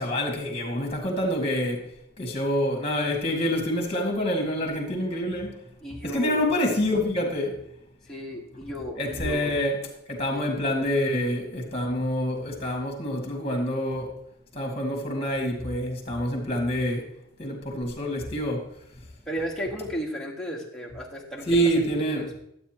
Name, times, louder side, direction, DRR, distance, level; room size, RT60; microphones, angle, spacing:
voice 1, 0.0-1.8 2.2-5.6 6.0-7.6 9.0-9.8 10.1-14.1 14.5-17.1 17.4-18.7 21.5-22.3, equal, 30° left, 2.1 m, -27 dB
voice 2, 5.8-6.5 8.1-9.6 10.3-10.4 19.3-21.9 22.1-22.4, equal, 5° left, 1.6 m, -34 dB
12.0 x 8.2 x 3.0 m
head